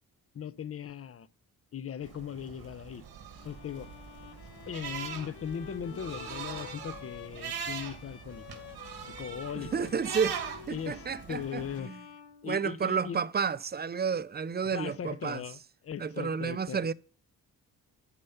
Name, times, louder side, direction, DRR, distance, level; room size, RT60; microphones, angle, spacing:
voice 1, 0.3-1.3 1.7-3.0 3.4-3.9 4.7-8.6 9.0-9.9 10.7-12.0 12.4-13.2 14.7-16.9, left 8 dB, 40° left, 0.5 m, -39 dB
sound 1, 2.0-11.8, right 7 dB, 80° right, 1.4 m, -42 dB
Bowed string instrument, 3.4-13.1, left 10 dB, 90° left, 0.9 m, -50 dB
voice 2, 9.5-10.4 10.7-11.9 12.4-15.4 16.0-16.9, right 6 dB, 30° right, 0.4 m, -31 dB
9.8 x 5.5 x 5.6 m
cardioid pair, 85°, 38 cm